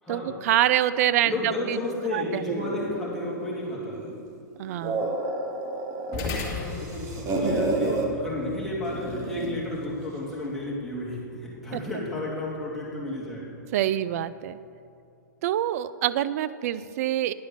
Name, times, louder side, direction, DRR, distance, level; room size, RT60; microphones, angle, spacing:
voice 1, 0.1-1.8 2.1-2.4 4.6-5.2 11.7-11.8 13.7-14.6 15.4-17.3, right 12 dB, 50° right, 15 dB, 0.4 m, -26 dB
voice 2, 1.2-4.0 6.1-13.5, left 2 dB, ahead, -7 dB, 2.7 m, -32 dB
sound 1, 2.4-4.2 4.6-6.3 6.6-8.1 8.8-9.6, right 2 dB, 30° right, 1.3 m, -30 dB
sound 2, 6.1-14.8, left 4 dB, 35° left, 1.4 m, -40 dB
10.5 x 5.0 x 7.3 m, 2.5 s
hypercardioid pair, 125°, 10 cm